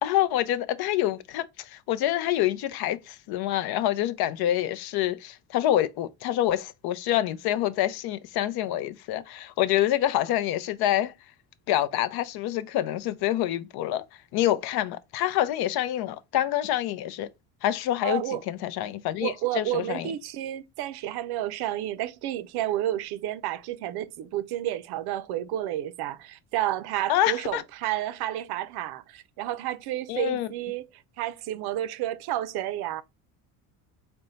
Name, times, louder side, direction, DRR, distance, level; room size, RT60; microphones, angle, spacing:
voice 1, 0.0-11.1 11.7-14.0 14.3-17.3 17.6-20.1 27.1-27.6 30.1-30.5, left 12 dB, 55° left, 0.6 m, -26 dB
voice 2, 18.0-18.4 19.2-30.9 31.2-33.0, right 13 dB, 60° right, 0.5 m, -31 dB
4.2 x 2.2 x 3.8 m
supercardioid pair, 95°, 44 cm